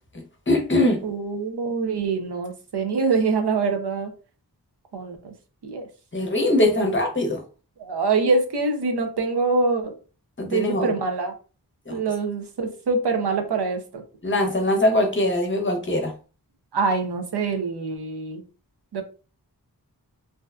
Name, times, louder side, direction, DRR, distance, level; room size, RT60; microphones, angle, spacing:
voice 1, 0.5-1.0 6.1-7.4 10.4-10.9 11.9-12.0 14.2-16.1, left 1 dB, 30° left, 0.7 m, -22 dB
voice 2, 1.0-4.1 4.9-5.3 5.6-5.8 7.8-9.9 10.5-11.3 11.9-14.0 16.7-18.4 18.9-19.0, right 4 dB, 80° right, 0.6 m, -24 dB
2.6 x 2.2 x 2.3 m
wide cardioid pair, 70°, 39 cm